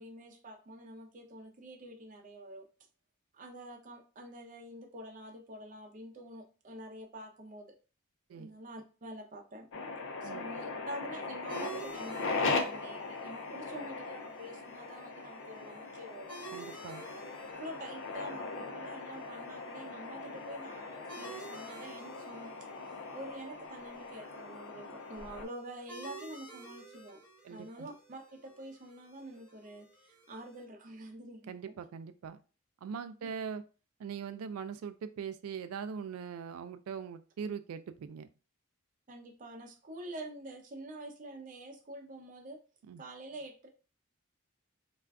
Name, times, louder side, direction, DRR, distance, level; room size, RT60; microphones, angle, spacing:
voice 1, 0.0-2.6 3.3-7.7 8.3-9.7 10.2-16.4 17.6-22.5 23.1-27.2 27.5-31.7 33.2-33.3 39.1-42.6 43.0-43.7, right 1 dB, 40° right, 3 dB, 0.5 m, -47 dB
sound 1, 9.7-25.5, left 3 dB, 60° left, 0.5 m, -39 dB
sound 2, 11.5-30.6, right 2 dB, 5° left, 1.0 m, -52 dB
voice 2, 16.5-17.0 27.4-27.9 31.5-32.4 32.8-33.6 34.0-38.3 42.9-43.0, right 6 dB, 90° right, 11 dB, 0.3 m, -41 dB
2.4 x 2.3 x 3.3 m, 0.35 s
head